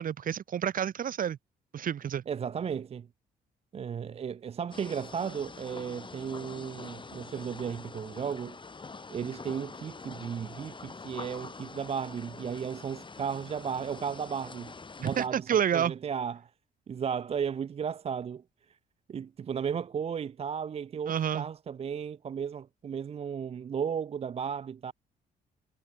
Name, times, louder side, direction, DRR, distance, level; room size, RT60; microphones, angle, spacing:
voice 1, 0.0-1.4 1.7-2.2 15.0-15.9 21.1-21.5, right 9 dB, 55° right, 0.9 m, -29 dB
voice 2, 2.3-3.1 3.7-8.6 9.1-14.7 15.0-16.5 16.9-18.4 19.1-24.9, right 7 dB, 35° right, 0.4 m, -35 dB
sound 1, 4.7-15.3, left 4 dB, 30° left, 2.7 m, -45 dB
cardioid pair, 80°, 17 cm